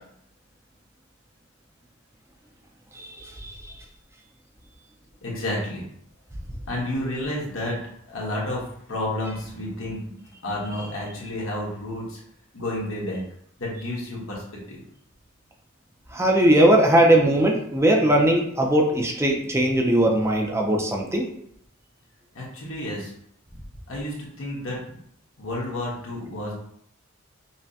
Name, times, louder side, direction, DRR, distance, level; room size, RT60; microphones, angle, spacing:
voice 1, 2.9-3.6 16.1-21.3, right 1 dB, 15° right, 1 dB, 0.4 m, -19 dB
voice 2, 5.2-5.8 6.7-7.8 8.1-10.1 10.4-12.2 12.5-13.2 13.6-14.4 14.7-14.8 22.3-23.1 23.9-25.0 25.4-26.5, left 1 dB, 75° left, -4 dB, 1.2 m, -30 dB
5.5 x 2.1 x 2.7 m, 0.69 s
head